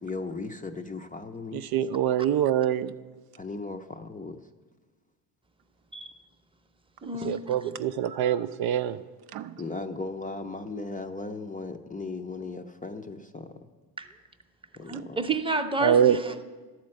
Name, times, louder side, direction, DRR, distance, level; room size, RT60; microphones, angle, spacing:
voice 1, 0.0-1.7 3.4-4.4 9.6-13.7 14.8-15.2, left 3 dB, 20° left, 7 dB, 0.6 m, -37 dB
voice 2, 1.5-2.9 7.2-9.0 9.3-9.5 15.8-16.2, right 9 dB, 55° right, 10 dB, 0.5 m, -24 dB
voice 3, 7.0-7.4 14.0-14.1 14.9-16.4, right 3 dB, 10° right, 6 dB, 0.8 m, -30 dB
11.5 x 4.4 x 7.6 m, 1.3 s
supercardioid pair, 70°, 46 cm